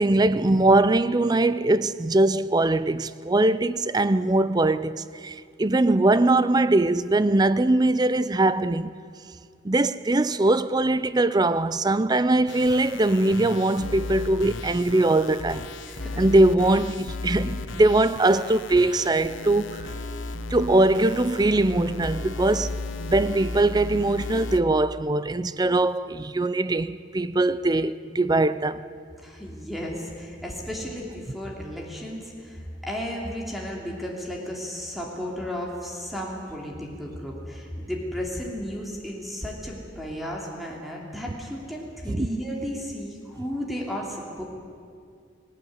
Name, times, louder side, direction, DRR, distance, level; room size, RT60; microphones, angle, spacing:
voice 1, 0.0-8.9 9.6-15.7 16.2-19.9 20.5-22.7 23.0-28.9 42.1-42.3, right 2 dB, 20° right, 0.5 m, -21 dB
sound 1, 12.5-24.6, left 2 dB, 85° left, 1.0 m, -35 dB
voice 2, 15.8-16.2 29.2-44.4, equal, ahead, 2.9 m, -34 dB
19.5 x 19.0 x 9.4 m
head